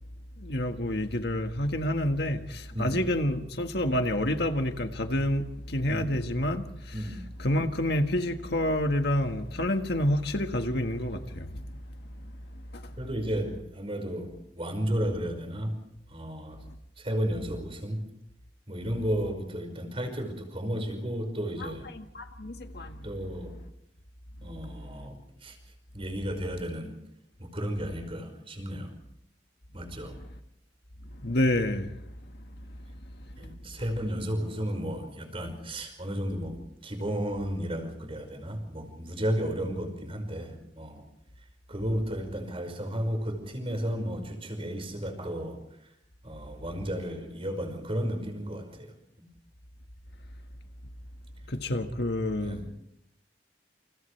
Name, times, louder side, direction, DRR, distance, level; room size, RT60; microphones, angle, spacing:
voice 1, 0.4-7.1 7.4-11.6 12.7-12.9 21.6-23.0 31.2-31.9 51.5-52.7, left 1 dB, 65° left, 1.7 m, -28 dB
voice 2, 13.0-15.8 16.1-16.6 17.0-18.0 18.7-21.9 23.0-23.6 24.4-25.6 25.9-27.0 27.4-29.0 29.7-30.2 33.4-41.0 41.7-45.9 46.2-49.3 52.4-52.6, equal, 30° right, 5.4 m, -33 dB
29.5 x 29.0 x 3.3 m
head